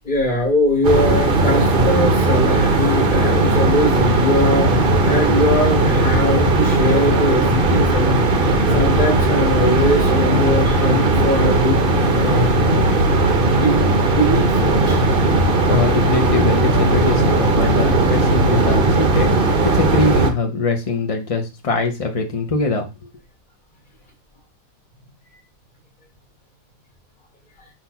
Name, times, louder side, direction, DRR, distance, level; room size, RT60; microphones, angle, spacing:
voice 1, 0.1-11.8 12.1-12.5 13.6-15.0, left 1 dB, 25° left, 0 dB, 1.8 m, -21 dB
sound 1, 0.8-20.3, right 2 dB, 40° right, 0.8 m, -17 dB
voice 2, 15.4-22.9, left 3 dB, 45° left, 4 dB, 0.4 m, -23 dB
6.0 x 3.4 x 5.7 m, 0.27 s
omnidirectional pair, 2.0 m